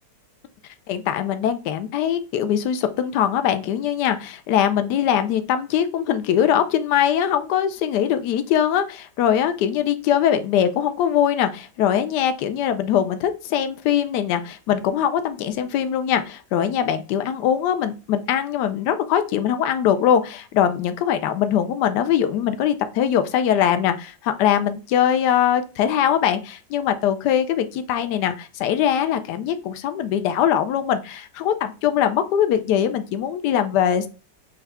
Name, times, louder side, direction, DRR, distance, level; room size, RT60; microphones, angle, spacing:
voice 1, 0.9-34.1, left 9 dB, 75° left, 9 dB, 1.2 m, -22 dB
6.5 x 2.4 x 3.4 m, 0.33 s
omnidirectional pair, 1.9 m